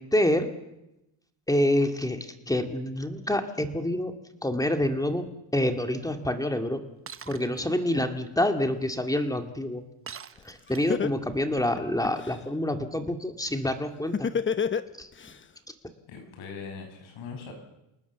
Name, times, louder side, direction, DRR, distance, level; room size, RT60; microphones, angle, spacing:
voice 1, 0.1-0.5 1.5-4.1 4.4-6.8 7.3-9.8 10.4-14.3 15.0-15.1 15.7-15.8, left 1 dB, 10° left, 6 dB, 2.2 m, -27 dB
Shatter, 7.1-7.6 10.1-11.1, right 7 dB, 30° right, 1.0 m, -43 dB
Laughter, 10.4-10.5 10.9-12.4 14.1-15.3, left 6 dB, 25° left, 1.0 m, -27 dB
voice 2, 16.1-17.5, left 5 dB, 80° left, 4 dB, 6.3 m, -40 dB
28.5 x 19.0 x 7.2 m, 0.90 s
cardioid pair, 120°, 46 cm